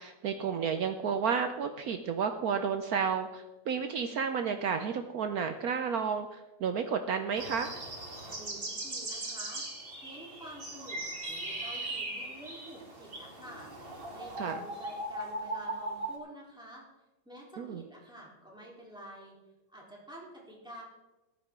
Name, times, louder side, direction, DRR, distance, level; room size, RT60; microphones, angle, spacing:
voice 1, 0.0-7.7 14.4-14.6 17.6-17.8, right 6 dB, 90° right, 7 dB, 0.8 m, -31 dB
sound 1, 7.4-16.1, right 2 dB, 25° right, 1.9 m, -39 dB
voice 2, 8.3-9.7 10.0-16.8 17.2-19.4 19.7-20.8, right 1 dB, ahead, -4 dB, 3.4 m, -49 dB
14.5 x 11.5 x 3.7 m, 1.1 s
omnidirectional pair, 2.4 m